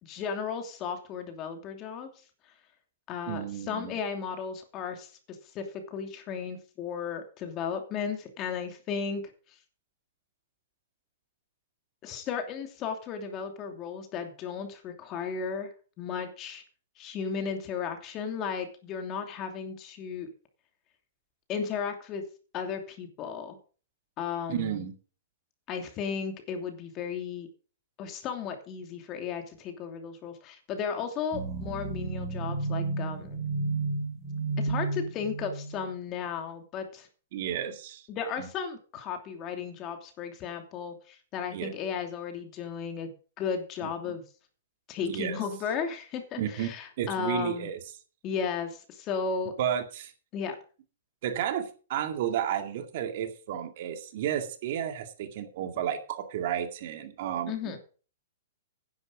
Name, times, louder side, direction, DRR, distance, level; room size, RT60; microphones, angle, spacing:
voice 1, 0.0-2.1 3.1-9.2 12.0-15.7 16.0-16.6 17.0-20.3 21.5-22.2 22.5-23.6 24.2-24.8 25.7-27.5 28.0-33.4 34.6-37.1 38.1-43.1 43.4-44.2 44.9-47.7 48.2-49.5 50.3-50.6 57.5-57.8, left 6 dB, 30° left, 5 dB, 2.8 m, -35 dB
voice 2, 3.3-4.0 24.5-25.0 37.3-38.0 38.4-38.5 41.5-41.7 44.0-44.1 45.1-45.4 46.4-46.7 47.0-47.8 49.6-50.1 51.2-57.8, right 10 dB, 55° right, 7 dB, 2.1 m, -32 dB
sound 1, 31.3-35.9, right 3 dB, 25° right, 7.1 m, -32 dB
10.5 x 10.5 x 5.0 m, 0.37 s
hypercardioid pair, 130°, 0 cm